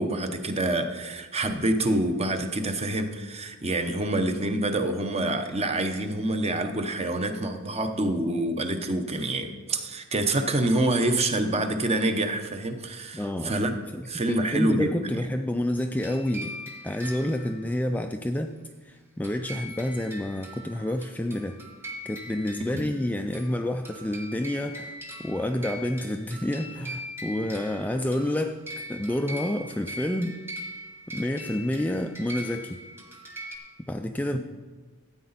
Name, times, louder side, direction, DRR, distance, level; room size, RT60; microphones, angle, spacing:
voice 1, 0.0-13.7 14.1-15.0 22.6-22.9, right 1 dB, 30° right, 7 dB, 0.8 m, -27 dB
voice 2, 13.1-13.6 13.9-16.5 16.8-18.5 18.8-21.6 22.0-28.6 28.9-30.4 31.1-32.8 33.8-34.4, left 1 dB, 5° left, 6 dB, 0.3 m, -29 dB
sound 1, 15.9-17.9 19.2-33.6, equal, 10° right, 1.3 m, -41 dB
13.5 x 8.6 x 4.0 m, 1.3 s
head